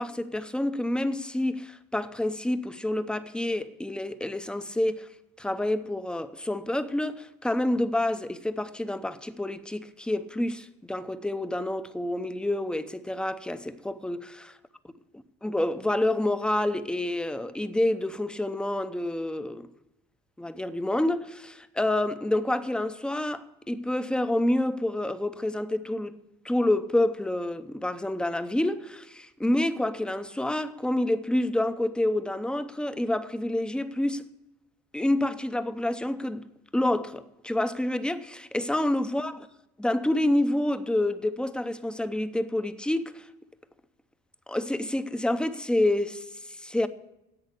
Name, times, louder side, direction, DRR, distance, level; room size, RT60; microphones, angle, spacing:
voice 1, 0.0-5.1 5.4-14.5 15.4-19.7 20.4-26.2 26.4-34.2 34.9-36.5 36.7-39.5 39.8-43.3 44.5-46.9, left 1 dB, 5° left, 0.6 m, -28 dB
10.5 x 8.0 x 8.1 m
cardioid pair, 110°, 17 cm